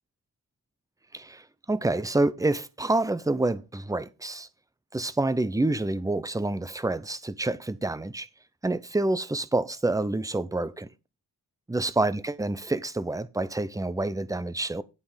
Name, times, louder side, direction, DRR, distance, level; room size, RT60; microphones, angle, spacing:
voice 1, 1.1-4.5 4.9-8.3 8.6-10.9 11.7-14.8, right 2 dB, 10° right, 0.6 m, -28 dB
10.5 x 5.7 x 4.9 m
wide cardioid pair, 130°, 39 cm